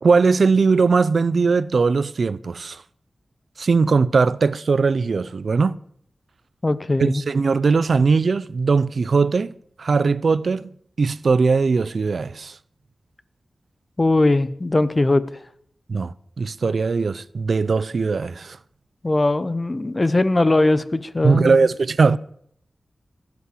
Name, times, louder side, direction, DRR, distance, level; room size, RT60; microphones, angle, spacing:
voice 1, 0.0-2.8 3.6-5.8 7.0-10.7 11.0-12.6 15.9-18.6 21.2-22.2, right 4 dB, 65° right, 0.5 m, -19 dB
voice 2, 6.6-7.2 14.0-15.2 19.0-21.6, left 2 dB, 30° left, 0.8 m, -20 dB
16.0 x 8.4 x 8.3 m
wide cardioid pair, 125°, 0 cm